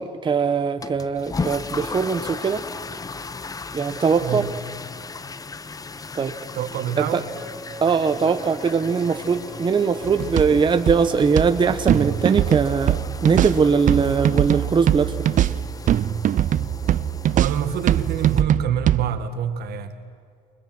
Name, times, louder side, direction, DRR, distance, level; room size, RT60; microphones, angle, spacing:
voice 1, 0.0-2.6 3.7-4.5 6.1-6.5 7.0-7.2 7.8-15.3, right 5 dB, 30° right, 8 dB, 1.0 m, -21 dB
sound 1, 0.8-18.4, left 4 dB, 20° left, 0.8 m, -36 dB
voice 2, 4.2-4.5 6.5-7.2 17.3-20.0, right 8 dB, 70° right, 9 dB, 1.9 m, -26 dB
Wind instrument woodwind instrument, 7.3-10.8, equal, 5° right, 6.7 m, -43 dB
sound 2, 10.1-19.0, right 11 dB, 50° right, 0.5 m, -22 dB
29.0 x 24.0 x 6.1 m, 2.2 s
cardioid pair, 110°, 17 cm